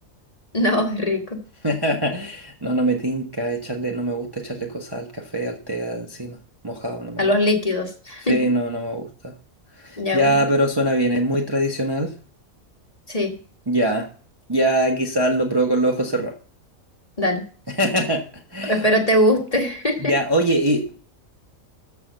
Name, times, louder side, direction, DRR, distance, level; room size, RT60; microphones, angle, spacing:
voice 1, 0.5-1.4 7.2-8.4 10.0-10.4 13.1-13.3 17.2-17.4 18.6-20.1, left 1 dB, 25° left, 2 dB, 1.9 m, -21 dB
voice 2, 1.6-6.4 6.6-7.3 8.3-9.3 9.8-12.1 13.7-14.1 14.5-16.3 17.8-18.9 20.0-20.9, right 1 dB, 20° right, 1 dB, 1.1 m, -23 dB
13.5 x 4.7 x 6.7 m, 0.42 s
omnidirectional pair, 1.4 m